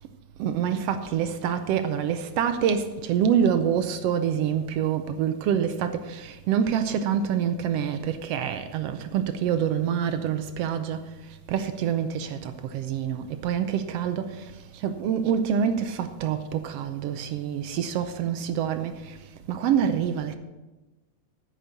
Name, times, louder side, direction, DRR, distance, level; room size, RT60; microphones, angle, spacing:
voice 1, 0.4-11.1 11.5-19.2 19.5-20.4, right 8 dB, 80° right, 1.5 m, -26 dB
9.1 x 6.6 x 8.1 m
omnidirectional pair, 3.4 m